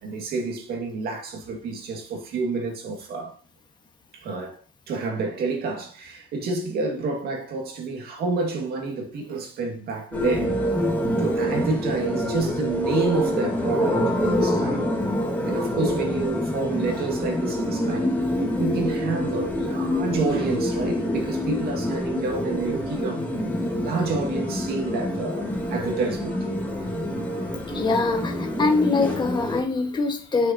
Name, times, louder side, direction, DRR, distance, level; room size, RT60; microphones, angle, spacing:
voice 1, 0.0-3.4 4.1-4.6 4.9-10.6 11.2-14.8 15.4-18.1 18.6-23.2 23.8-26.4, right 3 dB, 65° right, 2.0 m, -29 dB
sound 1, 10.1-29.6, equal, 10° left, 1.9 m, -26 dB
voice 2, 27.7-30.5, left 3 dB, 25° left, 1.5 m, -23 dB
7.8 x 6.4 x 2.9 m
cardioid pair, 110°, 17 cm